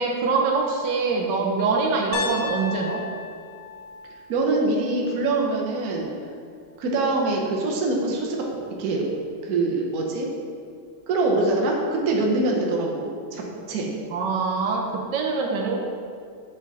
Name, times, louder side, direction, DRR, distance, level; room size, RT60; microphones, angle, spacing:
voice 1, 0.0-3.0 14.1-14.8 15.1-15.8, right 4 dB, 85° right, 0 dB, 1.4 m, -24 dB
Piano, 2.1-6.2, left 5 dB, 75° left, 1.1 m, -35 dB
voice 2, 4.3-6.1 6.8-8.4 8.8-9.1 9.4-10.3 11.1-13.9, right 2 dB, 65° right, -1 dB, 1.3 m, -24 dB
7.5 x 3.7 x 4.0 m, 2.2 s
omnidirectional pair, 1.8 m